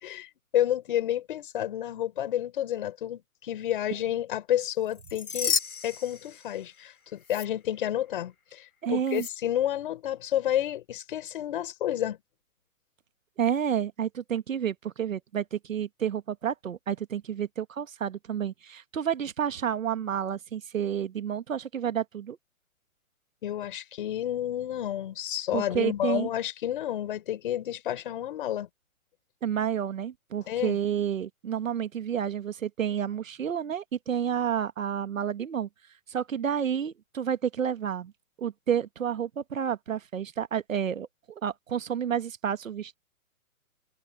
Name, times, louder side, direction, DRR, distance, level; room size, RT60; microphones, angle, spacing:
voice 1, 0.0-5.6 5.8-12.2 23.4-28.7 30.5-30.8, left 11 dB, 35° left, 4.7 m, -30 dB
sound 1, 4.9-6.9 7.2-7.5 9.1-9.3, left 6 dB, 85° left, 6.0 m, -32 dB
voice 2, 8.8-9.3 13.4-22.4 25.5-26.3 29.4-35.7 36.1-38.1 38.4-43.0, right 8 dB, 65° right, 1.6 m, -30 dB
hypercardioid pair, 165°, 42 cm